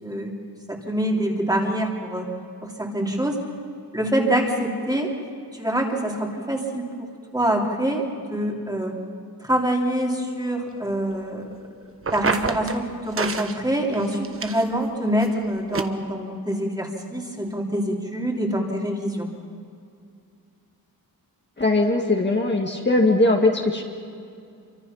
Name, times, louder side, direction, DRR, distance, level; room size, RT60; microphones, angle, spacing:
voice 1, 0.0-0.3 0.7-2.3 2.6-3.4 3.9-5.1 5.5-8.9 9.4-11.5 12.1-19.3, right 1 dB, 10° right, 0 dB, 3.0 m, -25 dB
sound 1, 12.0-12.8 13.2-13.6 13.9-14.8 15.2-15.3 15.7-15.8, right 4 dB, 35° right, 1.2 m, -27 dB
voice 2, 21.6-23.8, left 2 dB, 30° left, 0 dB, 2.1 m, -20 dB
27.5 x 24.5 x 5.8 m, 2.4 s
wide cardioid pair, 155°, 37 cm